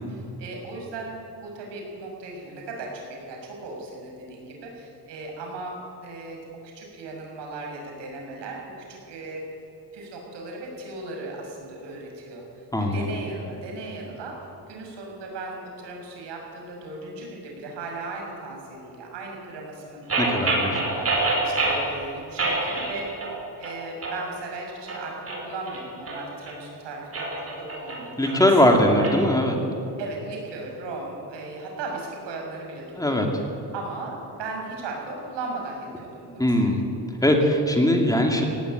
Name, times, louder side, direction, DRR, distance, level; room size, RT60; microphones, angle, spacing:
voice 1, 0.1-1.2 1.4-9.4 9.9-14.4 14.7-23.1 23.6-28.4 28.6-29.1 30.0-33.2 33.7-36.6, right 2 dB, 90° right, 0 dB, 6.3 m, -37 dB
voice 2, 12.7-13.0 20.2-20.8 28.2-29.6 33.0-33.3 36.4-36.8 37.2-38.4, left 1 dB, 10° left, 2 dB, 2.3 m, -20 dB
sound 1, 20.1-21.9 22.4-23.4 23.6-24.2 24.7-26.5 27.0-29.2, right 2 dB, 35° right, 4.7 m, -27 dB
18.0 x 16.0 x 8.9 m, 3.0 s
cardioid pair, 145°, 41 cm